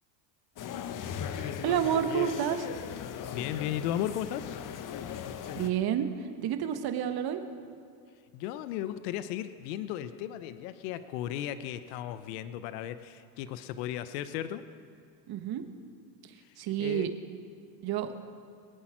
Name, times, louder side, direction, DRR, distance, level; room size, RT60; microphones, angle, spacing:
sound 1, 0.6-5.7, left 8 dB, 40° left, 1.0 m, -38 dB
voice 1, 1.3-2.7 5.5-6.1 6.4-7.4 15.3-15.6 16.6-17.1 17.8-18.2, right 10 dB, 45° right, 8 dB, 1.6 m, -29 dB
voice 2, 3.3-4.6 8.3-14.6 16.4-17.1, left 11 dB, 70° left, 12 dB, 1.0 m, -35 dB
23.0 x 8.7 x 6.0 m, 2.2 s
supercardioid pair, 95°, 49 cm